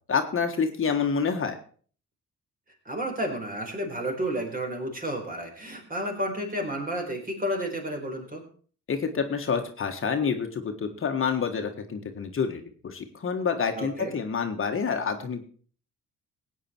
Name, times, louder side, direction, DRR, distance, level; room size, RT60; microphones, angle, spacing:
voice 1, 0.1-1.6 8.9-15.5, left 6 dB, 45° left, 5 dB, 1.5 m, -28 dB
voice 2, 2.8-8.4 13.7-14.1, right 1 dB, 30° right, 2 dB, 4.5 m, -31 dB
16.5 x 9.0 x 4.5 m, 0.44 s
cardioid pair, 90°, 30 cm